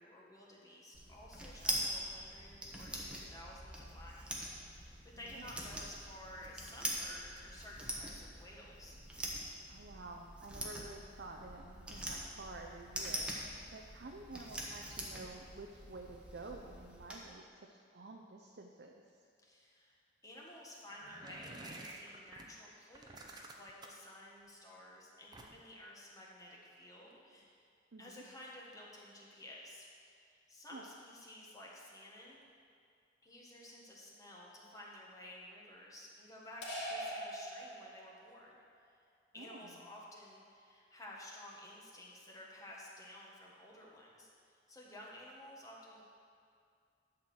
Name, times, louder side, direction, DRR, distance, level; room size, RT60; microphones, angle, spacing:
voice 1, 0.0-9.0 19.4-27.6 28.0-32.4 33.2-38.6 39.3-46.0, left 1 dB, 20° left, -4 dB, 1.6 m, -53 dB
sound 1, 0.9-17.2, right 1 dB, 5° right, 1.3 m, -44 dB
voice 2, 9.7-13.3 13.7-18.9 27.9-28.2 30.7-30.9 39.4-39.8, right 2 dB, 60° right, 1 dB, 0.7 m, -50 dB
sound 2, 20.9-22.5 22.9-24.1 25.3-25.8, right 2 dB, 25° right, 0.8 m, -50 dB
sound 3, 36.6-38.3, equal, 65° left, 2.3 m, -42 dB
11.5 x 4.6 x 7.7 m, 2.3 s
head